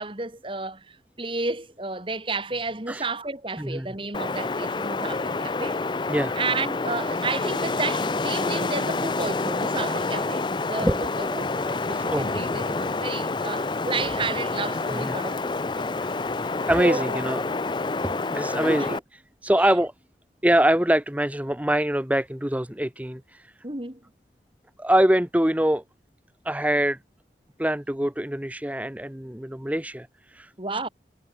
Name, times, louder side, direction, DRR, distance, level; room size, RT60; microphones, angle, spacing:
voice 1, 0.0-5.8 6.4-15.9 16.7-17.2 18.6-19.0 19.6-19.7 23.6-24.0 30.6-30.9, right 3 dB, 30° right, 2.6 m, -32 dB
Wind, 4.1-19.0, left 3 dB, 25° left, 0.5 m, -28 dB
voice 2, 11.9-12.3 14.9-15.2 16.0-16.3 16.7-17.4 18.0-19.0 19.4-19.9 20.4-23.5 24.8-25.8 26.4-27.0 27.6-30.5, right 1 dB, 10° right, 0.9 m, -24 dB
head